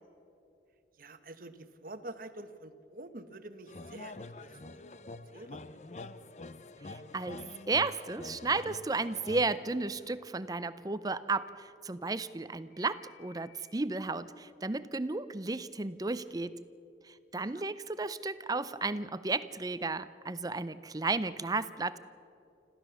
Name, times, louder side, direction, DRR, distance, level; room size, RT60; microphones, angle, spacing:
voice 1, 1.0-4.8 5.3-5.6 17.3-17.7, right 2 dB, 50° right, 10 dB, 1.1 m, -47 dB
sound 1, 3.7-10.2, left 2 dB, 40° left, 0.6 m, -47 dB
voice 2, 6.9-16.6 17.0-22.0, right 3 dB, 20° right, 14 dB, 0.5 m, -33 dB
Telephone, 9.6-9.9 11.1-11.4 12.7-13.7, left 9 dB, 60° left, 5.0 m, -64 dB
26.0 x 15.0 x 6.9 m, 2.7 s
head